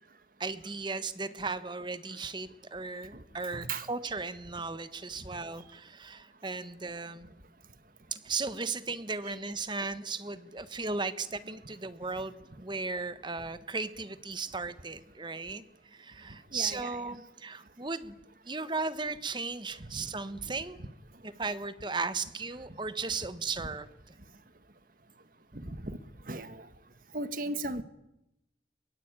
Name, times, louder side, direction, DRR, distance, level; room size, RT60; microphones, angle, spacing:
voice 1, 0.4-7.3 8.1-15.6 15.9-18.1 18.5-20.8 21.2-23.9, right 4 dB, 25° right, 13 dB, 1.3 m, -36 dB
voice 2, 3.5-3.8 9.2-9.3 16.5-17.0 19.9-20.0 25.5-26.0 26.3-26.6 27.1-27.8, right 2 dB, 50° right, 12 dB, 1.6 m, -36 dB
22.5 x 22.5 x 9.0 m, 0.87 s
head